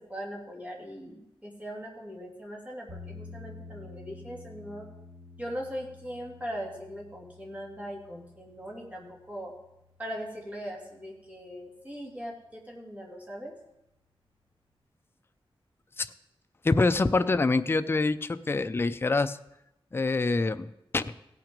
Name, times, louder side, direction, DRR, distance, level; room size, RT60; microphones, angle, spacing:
voice 1, 0.0-4.9 5.4-9.5 10.0-13.5, equal, 15° right, -2 dB, 2.6 m, -40 dB
sound 1, 2.9-11.0, left 3 dB, 55° right, 1.6 m, -50 dB
voice 2, 16.6-19.4 19.9-21.1, left 3 dB, 25° left, 11 dB, 0.4 m, -26 dB
16.5 x 5.9 x 5.2 m, 0.87 s
wide cardioid pair, 130°, 10 cm